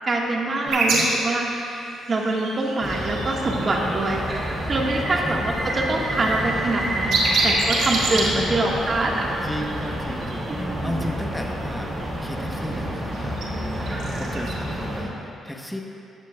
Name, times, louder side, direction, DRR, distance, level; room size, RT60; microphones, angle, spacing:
voice 1, 0.0-1.4 2.1-4.2 4.7-7.2 7.4-9.3 10.5-10.6 10.8-11.0, right 2 dB, 40° right, -1 dB, 1.6 m, -24 dB
voice 2, 0.6-1.1 5.2-5.4 8.1-8.7 9.4-11.9 12.2-15.8, equal, 5° left, 1 dB, 1.0 m, -34 dB
sound 1, 0.7-4.3 4.7-5.1 5.4-10.6 13.1-13.4 13.8-14.5, right 2 dB, 80° right, 2.1 m, -27 dB
sound 2, 2.8-15.0, equal, 20° right, 2.6 m, -30 dB
14.5 x 11.5 x 2.4 m, 2.7 s
cardioid pair, 90°, 0 cm